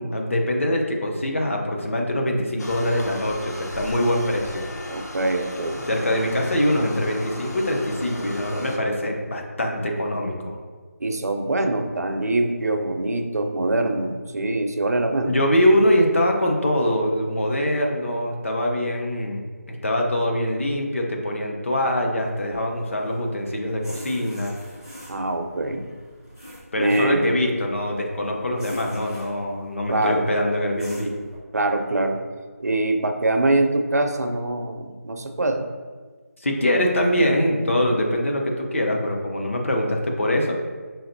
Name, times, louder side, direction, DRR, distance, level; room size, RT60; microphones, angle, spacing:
voice 1, 0.0-4.6 5.9-10.6 15.3-24.6 26.7-31.1 36.4-40.5, left 1 dB, 50° left, 1 dB, 0.7 m, -23 dB
sound 1, 2.6-8.8, left 2 dB, 90° left, 0.6 m, -36 dB
voice 2, 4.9-5.9 11.0-15.4 25.1-25.9 26.8-27.3 29.9-30.3 31.5-32.2 32.6-35.7, right 2 dB, 75° right, 5 dB, 0.5 m, -24 dB
sound 2, 22.2-31.4, equal, 10° left, 0.6 m, -44 dB
5.6 x 2.8 x 2.6 m, 1.5 s
figure-of-eight pair, 175°, 9 cm